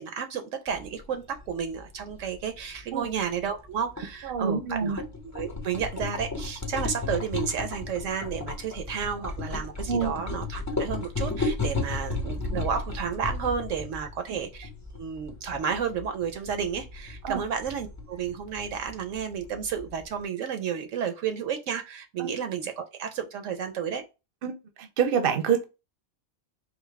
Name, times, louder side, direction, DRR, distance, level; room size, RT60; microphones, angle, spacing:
voice 1, 0.0-5.0 5.3-14.7 14.9-24.0, right 7 dB, 70° right, 0.9 m, -32 dB
sound 1, 0.7-20.2, left 3 dB, 20° left, 0.5 m, -35 dB
voice 2, 4.2-5.0 9.9-10.2 17.2-17.4 22.2-22.3 24.4-25.6, right 7 dB, 50° right, 0.8 m, -27 dB
3.9 x 2.9 x 3.2 m
omnidirectional pair, 1.4 m